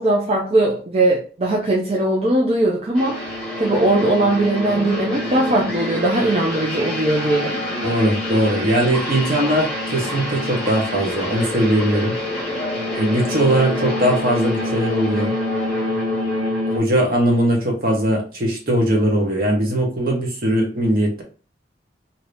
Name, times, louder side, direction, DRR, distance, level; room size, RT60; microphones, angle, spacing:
voice 1, 0.0-3.2 3.6-7.6, right 1 dB, 35° right, 0.5 m, -19 dB
sound 1, 2.9-16.8, left 1 dB, 5° left, 1.0 m, -26 dB
voice 2, 7.8-12.1 12.9-15.3 16.7-21.2, right 1 dB, 50° right, 1.0 m, -20 dB
2.8 x 2.7 x 3.2 m
head